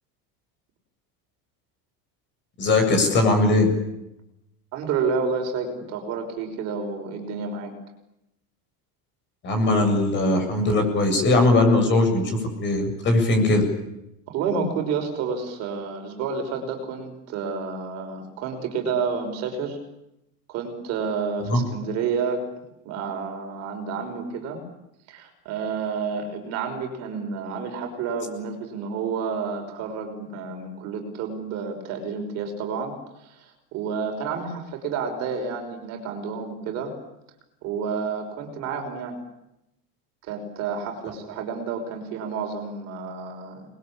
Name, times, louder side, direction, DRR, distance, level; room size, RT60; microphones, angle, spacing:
voice 1, 2.6-3.7 9.4-13.6 21.4-21.6, left 2 dB, 25° left, 5 dB, 7.8 m, -20 dB
voice 2, 4.7-7.7 14.3-19.8 20.5-22.5 22.8-24.6 25.1-36.9 37.6-39.2 40.3-43.7, right 5 dB, 40° right, 4 dB, 5.7 m, -30 dB
29.5 x 22.0 x 8.8 m, 0.86 s
cardioid pair, 175°, 41 cm